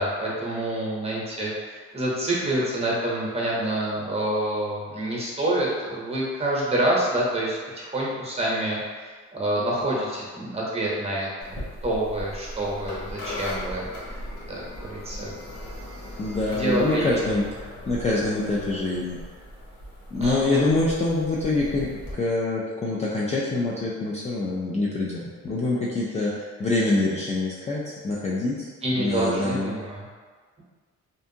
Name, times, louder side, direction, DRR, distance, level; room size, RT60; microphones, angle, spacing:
voice 1, 0.0-14.2 14.5-15.3 16.5-17.3 20.2-20.7 28.8-30.1, right 1 dB, 20° right, -5 dB, 0.9 m, -27 dB
sound 1, 11.4-22.1, equal, 85° left, 0.8 m, -38 dB
voice 2, 16.2-19.2 20.1-28.7 29.0-29.7, left 2 dB, 25° left, -6 dB, 0.3 m, -25 dB
2.6 x 2.4 x 2.6 m, 1.5 s
cardioid pair, 90°, 30 cm